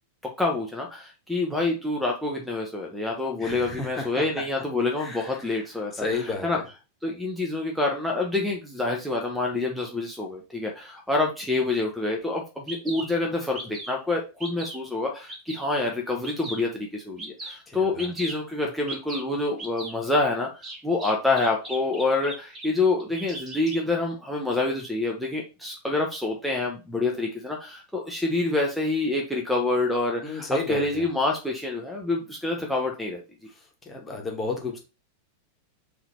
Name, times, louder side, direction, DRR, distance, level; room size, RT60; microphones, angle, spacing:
voice 1, 0.4-6.6 7.0-33.2, left 2 dB, ahead, 0 dB, 0.9 m, -27 dB
voice 2, 3.4-4.2 5.0-5.4 5.9-6.6 17.7-18.1 30.2-31.1 33.8-34.8, left 3 dB, 15° left, 1 dB, 1.4 m, -32 dB
Bird vocalization bird call bird song, 12.2-12.3 12.7-13.1 13.5-14.0 14.4-14.8 15.3-15.7 16.2-16.7 17.2-17.6 18.0-18.4 18.9-19.2 19.6-19.9 20.6-22.7 23.0-23.8, right 1 dB, 20° right, 1.8 m, -37 dB
3.9 x 2.9 x 4.4 m, 0.31 s
figure-of-eight pair, 90°, 0 cm